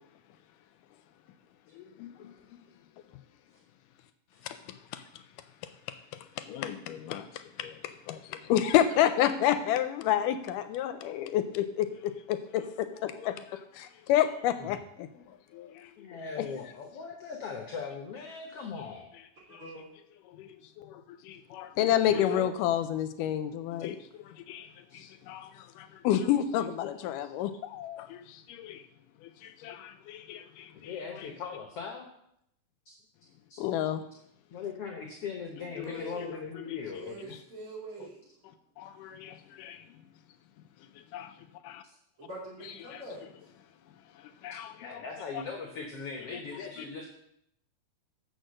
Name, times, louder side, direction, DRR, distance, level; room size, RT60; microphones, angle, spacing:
voice 1, 1.8-2.3 4.4-4.6 4.9-5.0 6.4-15.1 15.5-16.5 19.5-19.6 20.3-28.8 29.2-31.3 33.6-34.0 35.9-36.0 36.5-36.8 38.8-39.8 41.1-41.3 41.6-41.8 42.6-43.0 44.4-44.9, left 11 dB, 85° left, 11 dB, 2.1 m, -31 dB
voice 2, 16.0-19.1 22.1-22.5 24.5-25.0 30.7-32.1 32.9-33.0 33.5-33.6 34.5-37.3 44.8-47.1, left 5 dB, 65° left, 3 dB, 1.5 m, -39 dB
voice 3, 19.5-19.9 35.8-36.3 36.9-38.2 42.2-43.3, right 1 dB, 40° right, -4 dB, 3.7 m, -44 dB
8.0 x 6.6 x 6.4 m, 0.75 s
omnidirectional pair, 3.8 m